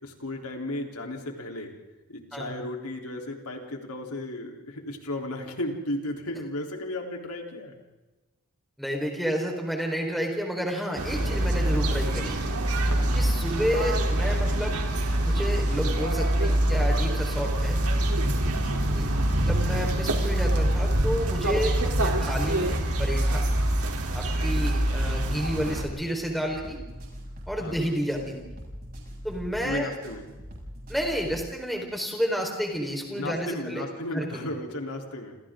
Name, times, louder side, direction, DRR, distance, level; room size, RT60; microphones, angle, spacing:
voice 1, 0.0-1.7 2.1-7.8 12.9-13.1 18.6-19.1 24.5-24.8 27.6-28.0 29.6-30.2 33.1-35.4, left 1 dB, 85° left, 1 dB, 3.7 m, -35 dB
voice 2, 8.8-12.5 13.1-14.8 15.2-17.8 18.9-19.1 19.4-23.4 24.1-26.8 27.5-28.4 29.2-29.9 30.9-33.8 34.1-34.5, equal, ahead, 0 dB, 4.4 m, -30 dB
sound 1, 11.0-25.8, right 1 dB, 85° right, 3.5 m, -25 dB
sound 2, 16.5-31.5, equal, 40° right, 7.5 m, -42 dB
29.5 x 28.0 x 3.8 m, 1.1 s
head